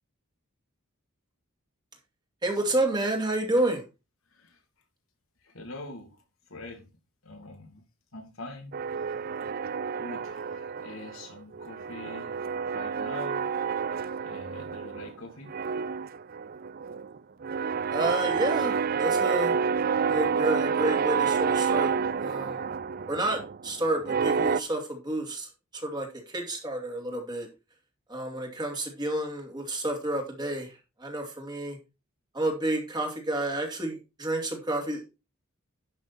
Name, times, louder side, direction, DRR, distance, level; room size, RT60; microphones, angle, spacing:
voice 1, 2.4-3.8 17.9-19.5 20.1-21.9 22.2-22.7 23.1-27.5 28.1-31.8 32.3-35.2, right 1 dB, 20° right, 2.6 m, -30 dB
voice 2, 4.3-4.6 5.4-6.9 7.2-7.8 8.1-9.4 10.0-13.5 14.2-15.6, left 2 dB, 75° left, 3.0 m, -44 dB
sound 1, 8.7-11.3 11.5-15.2 15.5-24.6, right 6 dB, 45° right, 0.4 m, -29 dB
11.5 x 6.4 x 4.2 m
head